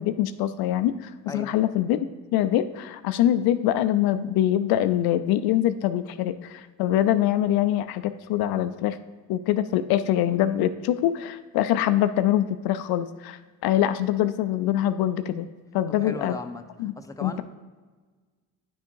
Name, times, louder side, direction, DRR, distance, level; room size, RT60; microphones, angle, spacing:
voice 1, 0.0-2.1 2.3-9.0 9.3-15.5 15.7-16.4 16.8-16.9 17.2-17.4, left 12 dB, 70° left, 11 dB, 0.5 m, -24 dB
voice 2, 15.9-17.4, left 2 dB, 10° left, 6 dB, 0.7 m, -37 dB
9.2 x 3.5 x 4.5 m, 1.4 s
supercardioid pair, 65°, 38 cm